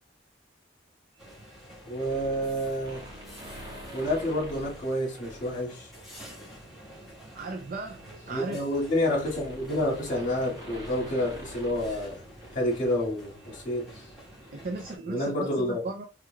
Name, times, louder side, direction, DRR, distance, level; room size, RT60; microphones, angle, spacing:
sound 1, 1.2-15.0, equal, ahead, 1.9 m, -48 dB
voice 1, 1.8-3.0 3.9-5.9 8.3-12.2 12.5-13.9 15.1-15.8, left 1 dB, 45° left, 2.0 m, -29 dB
sound 2, 1.9-5.6 6.1-6.3 7.5-12.9 13.2-13.3, equal, 25° right, 1.5 m, -46 dB
voice 2, 7.3-8.6 14.5-16.0, right 3 dB, 50° right, 0.5 m, -36 dB
4.7 x 3.6 x 2.3 m
head